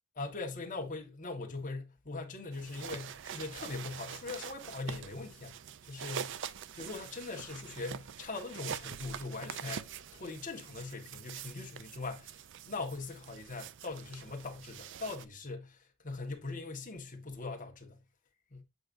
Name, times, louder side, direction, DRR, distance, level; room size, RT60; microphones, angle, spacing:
voice 1, 0.1-5.6 5.8-6.5 6.7-18.0 18.5-18.6, left 3 dB, 40° left, 1.6 m, -41 dB
sound 1, 2.5-15.3, right 8 dB, 60° right, 0.4 m, -45 dB
7.8 x 5.0 x 2.7 m
head